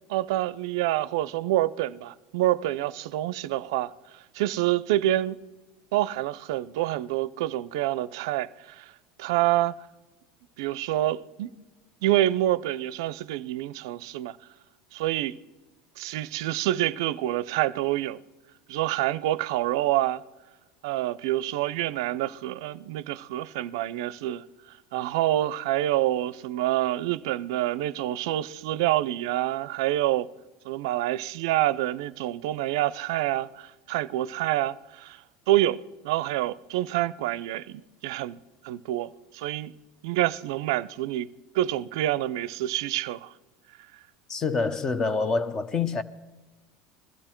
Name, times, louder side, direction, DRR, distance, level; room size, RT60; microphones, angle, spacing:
voice 1, 0.1-5.4 5.9-8.9 9.2-9.7 10.6-11.5 12.0-14.4 14.9-15.4 16.0-18.2 18.7-20.2 20.8-24.4 24.9-30.3 30.7-35.8 36.0-38.4 38.6-39.7 40.0-41.3 41.5-43.3, right 14 dB, 75° right, 0.4 m, -27 dB
voice 2, 44.3-46.0, left 4 dB, 25° left, 0.8 m, -26 dB
21.5 x 13.5 x 4.4 m
supercardioid pair, 115°, 2 cm